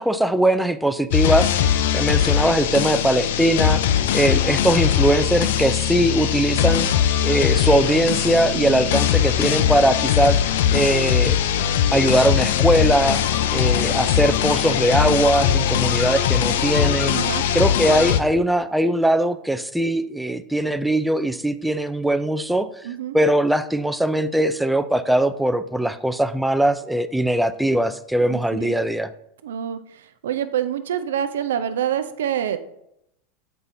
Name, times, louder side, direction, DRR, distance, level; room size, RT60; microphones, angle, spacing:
voice 1, 0.0-3.8 4.1-6.9 7.2-10.4 10.7-11.4 11.9-13.2 13.5-17.2 17.5-22.7 23.1-29.1, right 1 dB, 5° right, 11 dB, 0.4 m, -20 dB
sound 1, 1.1-18.2, left 9 dB, 70° left, 0.3 m, -20 dB
voice 2, 17.1-17.5 22.8-23.2 28.2-28.7 29.4-32.6, right 9 dB, 75° right, 10 dB, 0.4 m, -27 dB
6.7 x 5.4 x 2.6 m, 0.78 s
hypercardioid pair, 95°, 0 cm